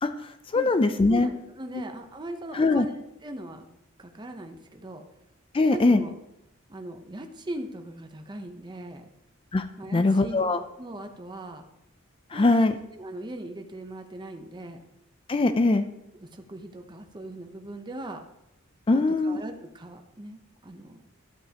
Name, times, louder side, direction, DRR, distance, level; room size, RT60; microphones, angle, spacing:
voice 1, 0.0-1.3 1.7-1.8 2.5-2.9 5.5-6.0 9.5-9.7 9.9-10.6 12.3-12.8 15.3-15.8 18.9-19.4, left 2 dB, 25° left, 9 dB, 0.4 m, -22 dB
voice 2, 1.1-3.7 4.0-5.0 5.6-6.2 6.7-9.0 9.8-10.5 10.8-11.6 12.3-12.5 12.9-14.8 16.1-18.2 18.9-21.0, right 1 dB, 20° right, 5 dB, 0.7 m, -39 dB
12.5 x 8.9 x 2.9 m, 0.85 s
head